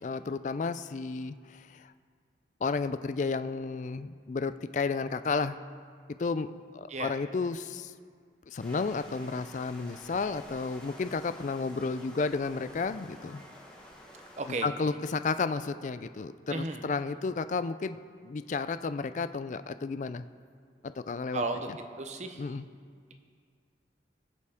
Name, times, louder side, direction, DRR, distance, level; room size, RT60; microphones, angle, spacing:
voice 1, 0.0-1.9 2.6-5.6 6.2-6.5 6.7-7.9 8.5-13.4 14.6-20.2 21.1-21.8 22.4-22.6, left 4 dB, 40° left, 12 dB, 0.3 m, -32 dB
sound 1, 8.6-14.6, left 1 dB, 5° left, 1.3 m, -50 dB
voice 2, 14.4-14.7 16.5-16.8 21.3-21.7 22.0-22.4, right 3 dB, 40° right, 6 dB, 0.8 m, -33 dB
20.5 x 6.9 x 3.6 m, 2.1 s
head